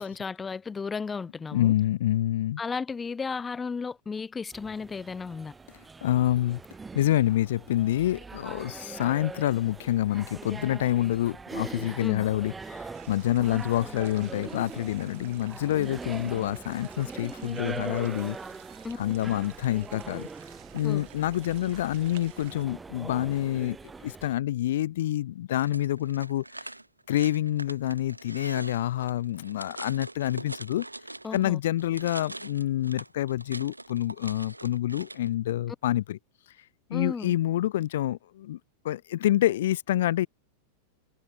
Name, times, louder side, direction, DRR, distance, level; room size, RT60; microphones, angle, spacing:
voice 1, 0.0-1.7 2.6-5.5 12.0-12.2 18.8-19.0 20.8-21.1 31.2-31.6 36.9-37.3, left 5 dB, 15° left, 0.7 m, -34 dB
voice 2, 1.5-2.6 6.0-6.6 6.9-18.4 19.0-20.3 20.7-23.8 24.0-26.4 27.1-30.9 31.3-36.2 36.9-38.6 38.8-40.3, left 13 dB, 55° left, 0.6 m, -27 dB
sound 1, 4.5-24.3, right 4 dB, 15° right, 0.4 m, -42 dB
sound 2, 12.9-22.7, right 17 dB, 55° right, 1.7 m, -52 dB
sound 3, 25.5-31.5 31.8-35.3, right 2 dB, 85° right, 0.6 m, -43 dB
figure-of-eight pair, 90°, 0 cm